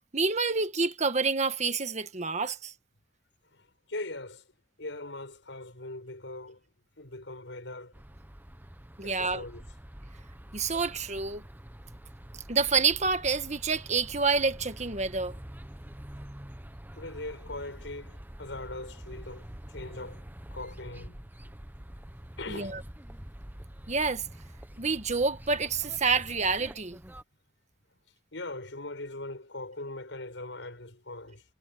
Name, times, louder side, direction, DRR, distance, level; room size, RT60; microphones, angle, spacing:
voice 1, 0.1-2.7 9.0-9.4 10.5-11.4 12.5-15.3 22.5-22.8 23.9-24.3 24.8-27.0, right 4 dB, 40° right, 1.5 m, -28 dB
voice 2, 3.4-4.5 4.8-6.6 7.0-7.9 9.0-9.7 17.0-20.2 20.5-21.2 22.4-22.8 28.3-31.4, left 2 dB, 85° left, 5.7 m, -41 dB
sound 1, 7.9-27.2, equal, 10° right, 1.0 m, -46 dB
head